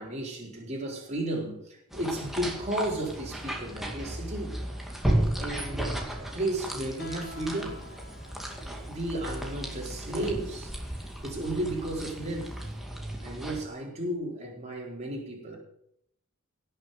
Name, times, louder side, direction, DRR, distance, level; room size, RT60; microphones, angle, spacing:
voice 1, 0.0-4.6 5.3-7.8 8.9-10.7 11.2-12.5 13.2-15.6, right 1 dB, 30° right, -1 dB, 4.1 m, -33 dB
sound 1, 1.9-13.6, right 1 dB, ahead, 2.3 m, -34 dB
Guitar, 7.0-12.7, equal, 50° left, 1.7 m, -50 dB
17.5 x 6.8 x 6.7 m, 0.72 s
head